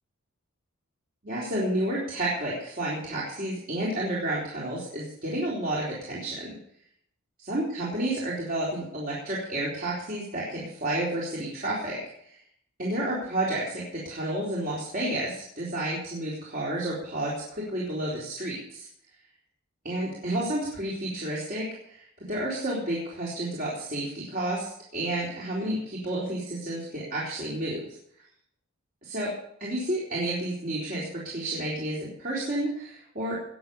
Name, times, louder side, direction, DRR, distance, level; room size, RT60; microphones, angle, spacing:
voice 1, 1.2-6.6 7.4-12.3 12.8-18.9 19.8-27.8 29.0-29.3 29.6-33.4, right 1 dB, 40° right, -6 dB, 3.9 m, -31 dB
19.5 x 7.2 x 7.0 m, 0.69 s
head